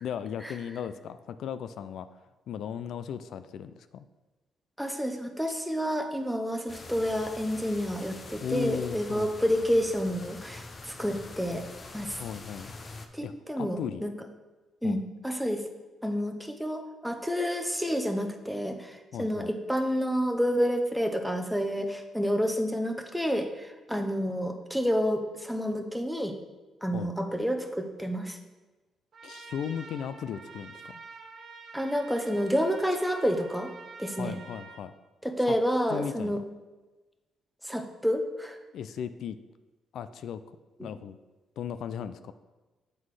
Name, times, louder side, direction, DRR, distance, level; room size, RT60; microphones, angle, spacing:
voice 1, 0.0-2.1 2.5-4.0 8.4-9.3 12.2-12.7 13.2-14.0 14.8-15.0 19.1-19.5 26.9-27.1 29.2-31.0 34.2-34.9 35.5-35.6 35.9-36.4 38.7-39.4 39.9-40.4 40.8-41.2 41.6-42.3, left 8 dB, 70° left, 12 dB, 0.3 m, -36 dB
voice 2, 4.8-11.6 11.9-12.2 13.1-14.1 14.8-15.6 16.0-26.3 26.8-28.4 31.7-33.7 34.0-34.4 35.2-36.4 37.6-38.6 40.8-40.9, equal, ahead, 5 dB, 0.8 m, -29 dB
sound 1, 6.7-13.1, left 3 dB, 35° left, 0.7 m, -45 dB
Trumpet, 29.1-34.8, right 4 dB, 50° right, 1.0 m, -47 dB
7.5 x 4.0 x 4.8 m, 1.2 s
cardioid pair, 90°, 0 cm